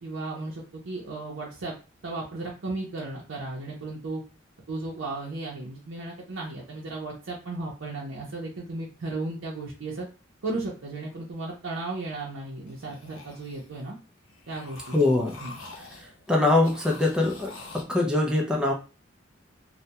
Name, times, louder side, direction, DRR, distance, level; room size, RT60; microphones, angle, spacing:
voice 1, 0.0-1.8 2.0-4.2 4.7-10.1 10.4-14.0 14.5-15.1 15.4-15.6, right 2 dB, 70° right, -3 dB, 0.6 m, -35 dB
sound 1, 12.7-13.9 14.2-16.2 16.6-17.8, left 3 dB, 80° left, 0.7 m, -46 dB
voice 2, 14.9-15.4 16.3-18.7, left 2 dB, 5° right, -2 dB, 0.4 m, -23 dB
2.2 x 2.1 x 2.8 m, 0.32 s
head